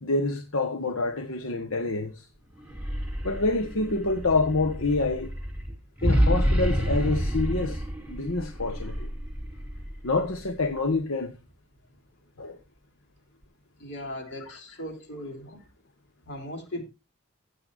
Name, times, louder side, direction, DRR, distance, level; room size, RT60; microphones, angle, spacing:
voice 1, 0.0-2.1 3.2-5.3 6.0-9.1 10.0-11.3 12.4-12.6 14.5-14.6, left 3 dB, 80° left, 1.2 m, -27 dB
sound 1, 2.6-10.7, equal, 5° right, 2.5 m, -29 dB
voice 2, 13.8-15.6 16.2-16.8, left 1 dB, 60° left, 3.2 m, -38 dB
16.0 x 7.8 x 2.6 m
head